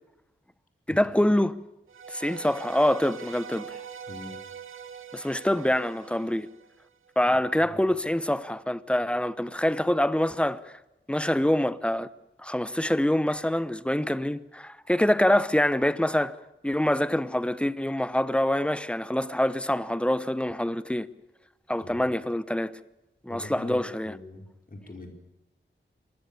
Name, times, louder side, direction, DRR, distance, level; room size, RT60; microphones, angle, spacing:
voice 1, 0.9-1.6 2.1-3.8 5.1-6.5 7.2-10.6 11.1-12.1 12.4-16.4 16.6-21.1 21.7-22.7 23.2-24.1, left 1 dB, 5° left, 1.0 m, -25 dB
sound 1, 1.9-7.1, right 7 dB, 85° right, 2.2 m, -43 dB
voice 2, 7.2-7.8 21.8-22.1 23.3-25.1, left 2 dB, 45° left, 5.2 m, -43 dB
25.0 x 20.0 x 7.2 m
wide cardioid pair, 95°, 20 cm